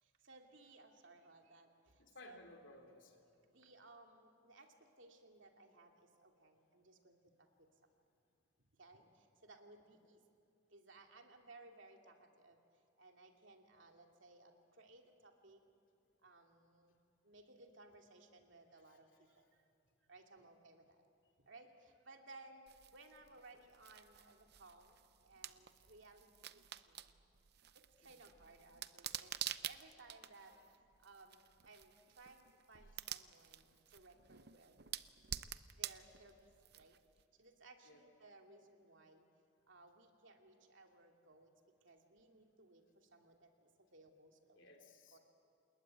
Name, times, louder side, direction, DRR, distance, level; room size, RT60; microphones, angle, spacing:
voice 1, 0.0-2.4 3.4-7.7 8.8-10.2 10.7-12.6 13.0-15.6 16.2-16.9 17.2-19.6 20.1-21.0 21.4-27.1 27.7-34.8 35.7-37.0 37.4-39.3 39.7-41.5 41.8-43.5 43.8-44.7 45.1-45.2, right 2 dB, 70° right, 3 dB, 2.6 m, -61 dB
voice 2, 2.0-3.3 18.8-19.0 20.4-20.5 28.0-28.1 32.8-32.9 37.8-38.0 44.5-45.2, left 2 dB, 70° left, 3 dB, 3.2 m, -59 dB
sound 1, 22.7-37.2, right 11 dB, 55° right, 0.7 m, -50 dB
28.5 x 20.5 x 9.3 m, 2.4 s
head